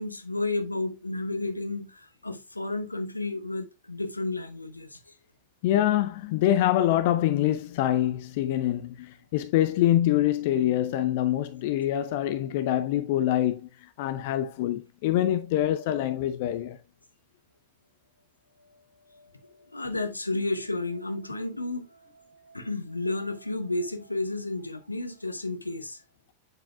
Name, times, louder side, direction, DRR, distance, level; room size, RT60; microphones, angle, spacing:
voice 1, 0.0-5.0 19.1-22.0 22.5-26.0, left 2 dB, 85° left, 0.9 m, -32 dB
voice 2, 5.6-9.1 9.3-13.6 14.0-16.8, left 12 dB, 50° left, 0.5 m, -25 dB
7.8 x 7.0 x 2.2 m
figure-of-eight pair, 90°, 0 cm